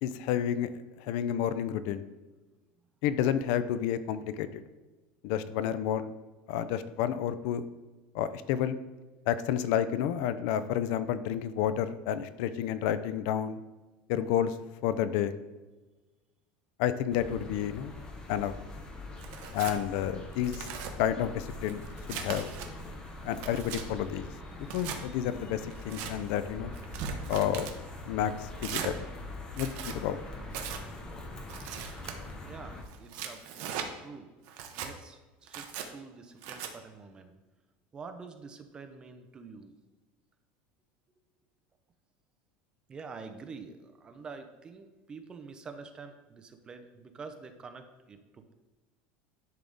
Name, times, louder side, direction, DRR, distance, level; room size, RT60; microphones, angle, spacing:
voice 1, 0.0-0.7 1.0-2.1 3.0-4.6 5.2-6.1 6.5-7.6 8.1-8.8 9.3-13.6 14.1-14.5 14.8-15.3 16.8-17.9 18.3-18.5 19.5-20.7 21.0-21.8 22.1-22.5 23.2-24.3 24.7-26.7 27.3-27.7 28.1-28.9 29.6-30.2, left 10 dB, 60° left, 13 dB, 0.4 m, -30 dB
sound 1, 17.1-32.8, left 2 dB, 15° left, 0.8 m, -43 dB
Tearing, 19.2-19.8 20.3-20.9 21.5-22.7 23.2-23.8 24.6-25.0 25.7-26.1 26.7-27.8 28.6-28.9 29.5-30.0 30.5-30.8 31.5-32.1 32.9-33.9 34.5-34.9 35.5-35.9 36.4-36.7, right 7 dB, 55° right, 0.8 m, -39 dB
voice 2, 32.4-34.3 34.7-37.4 37.9-39.8 42.9-48.5, right 4 dB, 20° right, 6 dB, 0.5 m, -47 dB
10.5 x 3.5 x 3.9 m, 1.2 s
cardioid pair, 160°, 5 cm